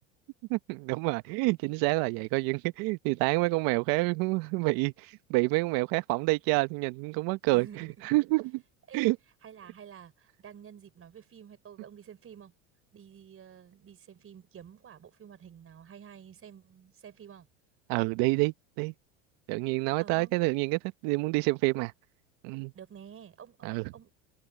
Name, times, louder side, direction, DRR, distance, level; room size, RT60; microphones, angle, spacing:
voice 1, 0.5-8.6 8.9-9.2 17.9-18.9 19.5-21.9 22.4-22.7 23.6-23.9, right 24 dB, 65° right, 1.2 m, -28 dB
voice 2, 7.5-8.1 8.9-9.1 9.4-12.5 12.9-17.5 20.0-20.4 22.7-24.1, right 8 dB, 35° right, 4.9 m, -50 dB
hypercardioid pair, 95°, 38 cm